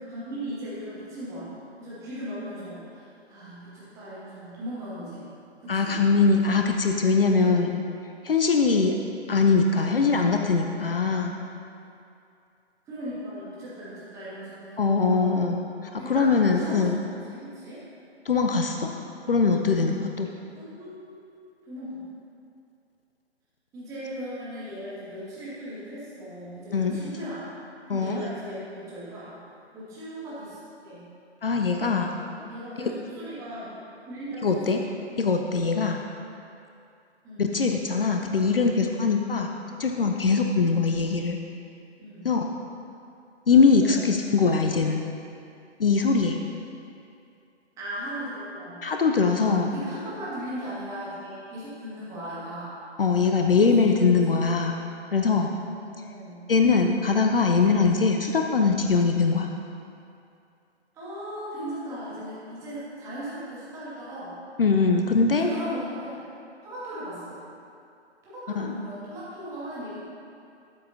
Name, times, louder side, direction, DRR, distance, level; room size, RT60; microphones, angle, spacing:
voice 1, 0.0-5.3 5.6-6.0 7.4-7.5 9.7-10.1 12.9-15.6 16.0-17.8 18.6-18.9 20.5-21.2 21.7-22.0 23.7-27.5 27.9-29.4 29.7-31.1 32.5-33.7 34.1-34.8 37.2-37.5 42.0-42.3 43.8-44.1 47.8-48.8 49.1-52.8 53.6-54.2 55.9-56.4 60.9-64.4 65.3-66.2 66.6-67.4 68.2-70.0, equal, 10° right, -10 dB, 1.9 m, -38 dB
voice 2, 5.7-7.7 8.2-8.9 9.3-11.4 14.8-17.0 18.2-18.9 19.3-20.3 26.7-27.1 27.9-28.2 31.4-32.5 34.4-34.8 35.2-36.0 37.4-39.5 39.8-41.4 42.2-42.4 43.5-45.0 45.8-46.4 48.8-49.7 53.0-54.8 55.1-55.5 56.5-59.5 64.6-65.5 68.6-68.7, left 4 dB, 55° left, 3 dB, 0.7 m, -22 dB
12.5 x 8.9 x 2.7 m, 2.5 s
figure-of-eight pair, 140°, 34 cm